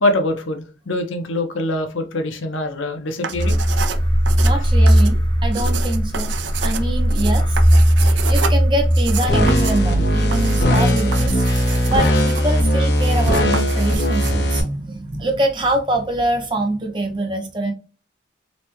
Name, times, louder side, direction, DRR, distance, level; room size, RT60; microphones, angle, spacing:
voice 1, 0.0-3.6, left 1 dB, 85° left, 0.8 m, -23 dB
sound 1, 3.1-14.3, right 6 dB, 70° right, 0.4 m, -30 dB
sound 2, 3.3-9.9, equal, 20° left, 0.7 m, -17 dB
voice 2, 4.4-6.3 6.6-7.6 8.0-11.5 11.9-17.7, right 1 dB, 25° right, 0.6 m, -24 dB
sound 3, 9.3-14.6, equal, 55° left, 0.9 m, -18 dB
4.1 x 2.2 x 3.0 m
head